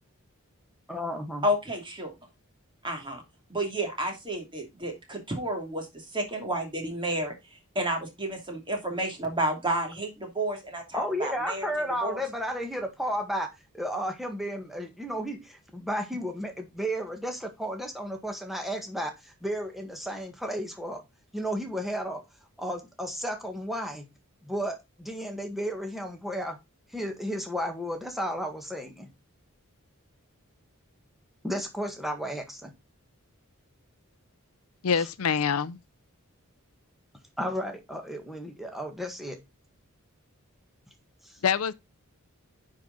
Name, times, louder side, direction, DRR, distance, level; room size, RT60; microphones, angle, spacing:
voice 1, 0.9-1.5 10.9-13.5 13.7-21.0 21.3-22.2 22.6-24.1 24.4-26.6 26.9-29.1 31.4-32.7 35.0-35.1 37.4-39.4 41.2-41.4, equal, ahead, 1.6 m, -33 dB
voice 2, 1.4-2.1 2.8-3.2 3.5-5.8 6.1-7.3 7.7-11.7 12.0-12.2, right 1 dB, 25° right, 2.8 m, -31 dB
voice 3, 34.8-35.8 41.4-41.7, left 6 dB, 80° left, 0.5 m, -25 dB
9.6 x 4.8 x 4.0 m
head